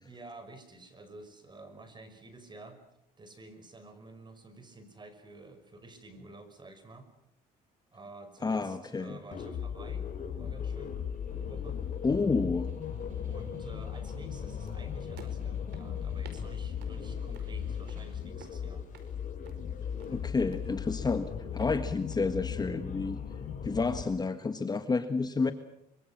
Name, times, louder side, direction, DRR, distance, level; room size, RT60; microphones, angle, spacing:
voice 1, 0.0-2.8 3.2-7.1 7.9-10.1 10.4-11.0 11.3-11.8 13.2-18.9, right 2 dB, 25° right, 10 dB, 5.6 m, -50 dB
voice 2, 8.4-9.2 12.0-12.7 20.1-23.2 23.6-25.5, left 4 dB, 25° left, 9 dB, 1.5 m, -30 dB
sound 1, 9.3-24.0, left 8 dB, 50° left, 5.2 m, -37 dB
Snare drum, 10.6-18.5, right 3 dB, 50° right, 7.4 m, -61 dB
sound 2, 14.6-22.2, right 6 dB, 80° right, 4.9 m, -57 dB
24.5 x 24.5 x 7.5 m, 0.80 s
cardioid pair, 110°, 17 cm